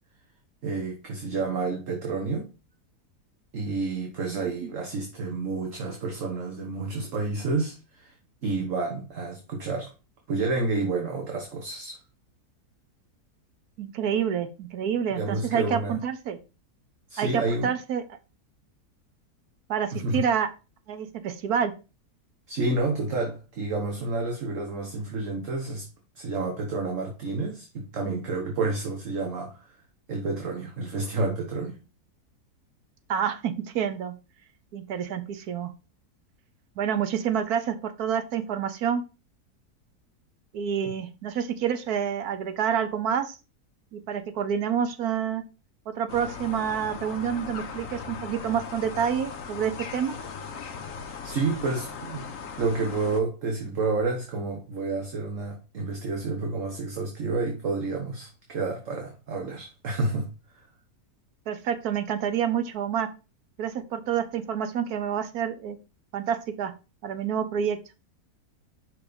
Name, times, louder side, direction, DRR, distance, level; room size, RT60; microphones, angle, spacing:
voice 1, 0.6-2.5 3.5-8.1 8.4-9.9 10.3-12.0 15.1-15.9 17.1-17.7 19.9-20.2 22.5-25.8 26.1-29.8 30.1-31.8 51.2-52.3 52.6-60.3, right 3 dB, 55° right, 1.6 m, -29 dB
voice 2, 4.3-4.7 13.8-16.4 17.2-18.0 19.7-20.5 20.9-21.7 33.1-34.1 34.7-35.7 36.8-39.0 40.5-43.4 43.9-45.4 45.9-50.1 61.5-63.1 63.6-65.8 66.1-66.7 67.0-67.8, right 8 dB, 70° right, 1.3 m, -28 dB
sound 1, 46.1-53.2, left 6 dB, 60° left, 1.3 m, -38 dB
5.7 x 4.6 x 5.2 m
omnidirectional pair, 1.7 m